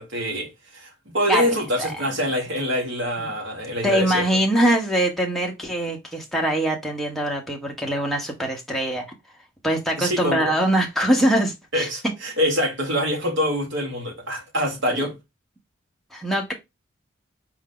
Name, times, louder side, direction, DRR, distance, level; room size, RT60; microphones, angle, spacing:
voice 1, 0.0-4.3 10.0-10.5 11.7-15.2, equal, 65° right, 1.5 m, -25 dB
voice 2, 3.8-9.0 9.6-11.9 14.9-15.1 16.1-16.5, right 1 dB, ahead, 0.9 m, -23 dB
4.8 x 2.7 x 3.7 m
head